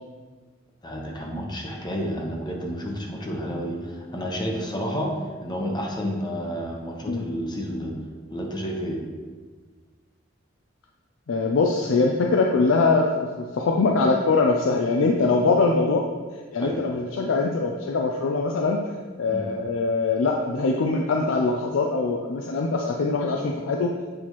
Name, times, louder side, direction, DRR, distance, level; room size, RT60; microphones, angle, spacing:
voice 1, 0.8-5.1 5.4-7.9 8.3-9.0 16.6-16.8 19.3-19.5, equal, 20° left, 0 dB, 0.8 m, -30 dB
voice 2, 11.3-16.1 16.5-18.8 19.2-24.0, left 3 dB, 75° left, 1 dB, 0.4 m, -22 dB
7.7 x 4.2 x 3.0 m, 1.5 s
head